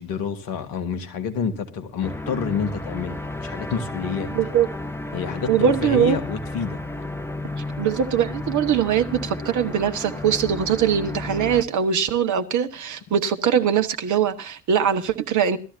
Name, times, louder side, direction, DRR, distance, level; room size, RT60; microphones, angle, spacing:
voice 1, 0.0-4.3 5.1-6.8, left 6 dB, 60° left, 1.9 m, -28 dB
sound 1, 2.0-11.6, left 2 dB, 5° left, 1.3 m, -33 dB
voice 2, 4.3-4.7 5.5-6.2 7.8-15.6, right 8 dB, 50° right, 1.3 m, -21 dB
18.5 x 13.5 x 2.7 m
figure-of-eight pair, 45°, 40 cm